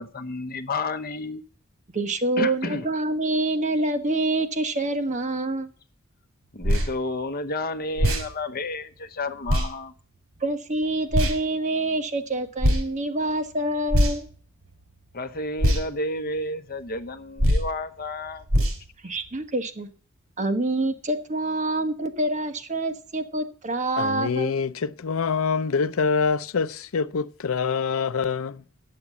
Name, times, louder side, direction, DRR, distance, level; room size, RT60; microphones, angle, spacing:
voice 1, 0.0-1.4 2.4-2.9 6.5-9.9 15.1-18.4, left 2 dB, 45° left, 0.8 m, -31 dB
voice 2, 1.9-5.7 10.4-14.3 19.0-19.9 20.4-24.5, right 2 dB, 35° right, 1.2 m, -26 dB
sound 1, 6.6-6.9 8.0-8.3 9.5-9.7 11.1-11.4 12.6-12.8 13.9-14.3 15.6-15.8 17.4-17.7 18.5-18.8, equal, 80° right, 2.7 m, -21 dB
voice 3, 24.0-28.6, left 5 dB, 80° left, 0.6 m, -25 dB
8.7 x 7.4 x 8.2 m
head